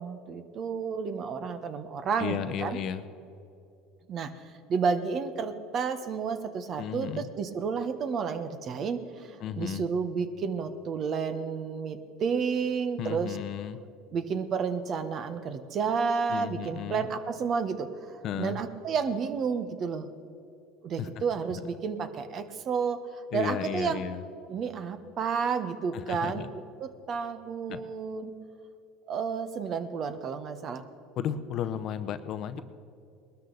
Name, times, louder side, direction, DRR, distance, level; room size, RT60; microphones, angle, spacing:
voice 1, 0.0-2.8 4.1-4.4 4.7-13.4 14.1-20.1 20.8-24.0 24.5-28.3 29.1-30.8, right 6 dB, 45° right, 10 dB, 1.1 m, -31 dB
voice 2, 2.2-3.0 6.8-7.3 9.4-9.8 13.0-13.8 16.3-17.1 18.2-18.6 21.0-21.1 23.3-24.2 25.9-26.5 27.7-27.8 31.2-32.6, left 9 dB, 55° left, 12 dB, 0.8 m, -34 dB
20.0 x 12.5 x 4.0 m, 2.7 s
supercardioid pair, 100°, 0 cm